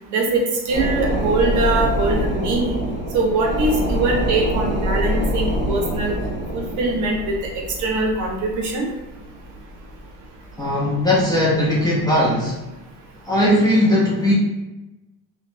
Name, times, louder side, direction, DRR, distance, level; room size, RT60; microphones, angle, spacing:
voice 1, 0.1-2.8 3.1-6.1 6.5-8.9, right 2 dB, 55° right, 0 dB, 0.7 m, -22 dB
sound 1, 0.7-10.7 11.1-11.2, equal, 30° right, 1.3 m, -25 dB
voice 2, 10.6-12.6 13.3-14.3, left 1 dB, 10° left, -7 dB, 0.4 m, -18 dB
2.9 x 2.2 x 2.5 m, 1.0 s
cardioid pair, 140°, 36 cm